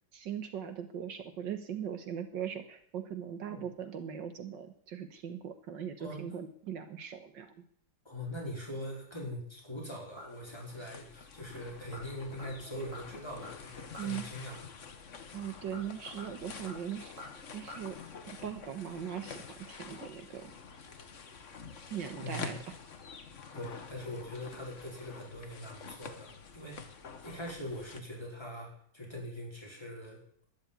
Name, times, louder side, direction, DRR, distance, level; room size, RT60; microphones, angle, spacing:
voice 1, 0.1-7.6 14.0-14.2 15.3-17.1 17.5-18.0 18.3-20.5 21.9-22.8, right 8 dB, 70° right, 9 dB, 1.9 m, -40 dB
voice 2, 8.0-14.6 22.2-22.6 23.5-26.9 27.2-30.2, equal, 15° left, -2 dB, 4.9 m, -42 dB
sound 1, 9.7-10.6 10.9-11.0 11.6-12.1 12.4-14.2 15.4-17.8 18.1-18.2, left 1 dB, 40° right, 8.4 m, -50 dB
sound 2, 10.0-28.0, left 5 dB, 45° left, 1.5 m, -48 dB
13.0 x 10.5 x 9.3 m, 0.63 s
omnidirectional pair, 2.0 m